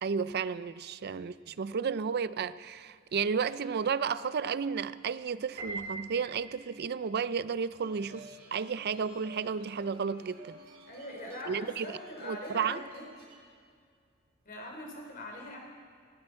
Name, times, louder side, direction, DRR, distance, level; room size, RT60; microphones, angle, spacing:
voice 1, 0.0-10.6 11.5-11.9 12.2-12.8, right 6 dB, 50° right, 0.4 m, -32 dB
Piano, 5.6-6.9, right 3 dB, 35° right, 3.9 m, -41 dB
sound 1, 7.8-13.4, right 2 dB, 85° right, 2.9 m, -52 dB
voice 2, 10.9-13.0 14.4-15.6, left 1 dB, 45° left, 3.1 m, -42 dB
19.5 x 15.5 x 4.4 m
head